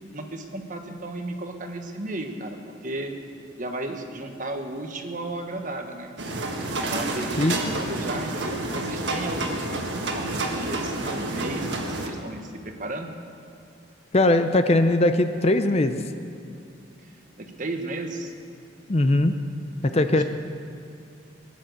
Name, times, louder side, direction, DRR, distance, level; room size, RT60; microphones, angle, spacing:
voice 1, 0.1-2.6 2.8-3.1 3.6-6.1 6.7-13.1 17.0-17.1 17.4-18.3 19.9-20.2, right 2 dB, 40° right, 4 dB, 1.3 m, -34 dB
sound 1, 6.2-12.1, right 2 dB, 65° right, 1.7 m, -29 dB
voice 2, 7.4-7.7 14.1-16.0 18.9-19.4 19.8-20.2, left 2 dB, 35° left, 9 dB, 0.6 m, -20 dB
19.5 x 10.5 x 6.6 m, 2.5 s
head